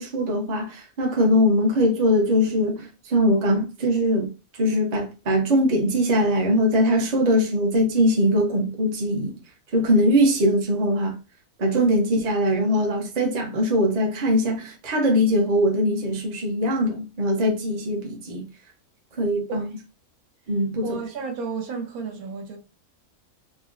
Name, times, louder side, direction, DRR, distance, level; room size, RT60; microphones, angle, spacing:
voice 1, 0.0-4.3 4.6-9.4 9.7-11.1 11.6-18.4 19.2-19.8 20.5-21.0, equal, 40° right, 0.7 m, -21 dB
voice 2, 20.8-22.6, right 4 dB, 80° right, 1.2 m, -32 dB
3.7 x 2.0 x 2.5 m
omnidirectional pair, 1.5 m